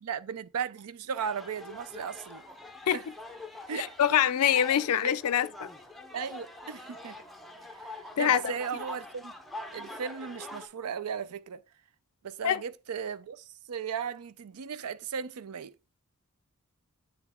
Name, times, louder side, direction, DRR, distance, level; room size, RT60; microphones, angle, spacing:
voice 1, 0.0-2.4 2.9-3.0 3.7-3.9 4.9-5.1 6.1-7.2 8.2-9.3 9.7-11.6 12.2-15.7, right 7 dB, 90° right, 0.5 m, -36 dB
sound 1, 1.1-10.7, left 2 dB, ahead, 0.7 m, -44 dB
voice 2, 3.8-5.7 8.2-8.4 12.4-12.6, left 9 dB, 80° left, 0.4 m, -25 dB
9.1 x 3.4 x 3.5 m
head